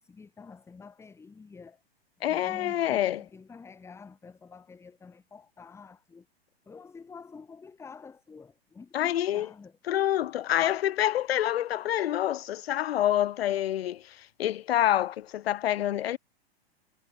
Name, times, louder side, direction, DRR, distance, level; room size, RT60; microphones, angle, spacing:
voice 1, 0.0-1.8 2.2-6.3 6.7-9.8, left 5 dB, 10° left, 0.9 m, -49 dB
voice 2, 2.2-3.2 8.9-9.5 9.9-16.2, left 12 dB, 75° left, 0.5 m, -27 dB
hypercardioid pair, 110°, 31 cm